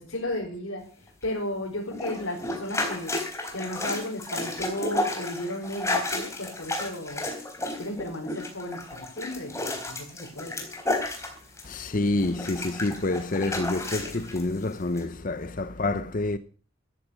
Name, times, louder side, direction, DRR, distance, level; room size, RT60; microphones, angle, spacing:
voice 1, 0.0-7.3 7.7-10.7, left 1 dB, 80° left, 4.8 m, -34 dB
sound 1, 1.9-11.9 12.2-14.4 15.0-15.1, left 2 dB, 15° left, 3.8 m, -32 dB
voice 2, 11.6-16.4, left 2 dB, 40° left, 0.8 m, -28 dB
13.5 x 13.5 x 6.5 m
head